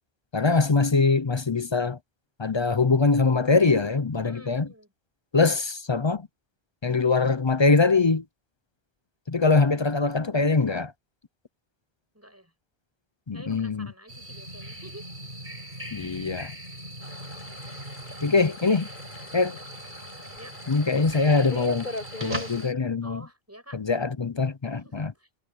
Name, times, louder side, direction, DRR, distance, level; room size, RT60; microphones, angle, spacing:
voice 1, 0.3-2.0 2.4-4.7 5.3-6.3 6.8-8.2 9.3-10.9 13.3-13.9 15.9-16.6 18.2-18.9 19.3-19.6 20.7-21.9 22.2-23.2 23.7-25.1, left 4 dB, 30° left, 0.6 m, -23 dB
voice 2, 4.2-4.9 12.1-12.5 13.3-15.1 18.0-18.3 20.4-20.6 23.0-23.8 24.8-25.3, right 1 dB, 15° right, 7.5 m, -49 dB
sound 1, 14.1-22.7, right 1 dB, 50° right, 7.6 m, -40 dB
sound 2, 17.0-22.7, left 2 dB, 50° left, 5.6 m, -39 dB
omnidirectional pair, 1.1 m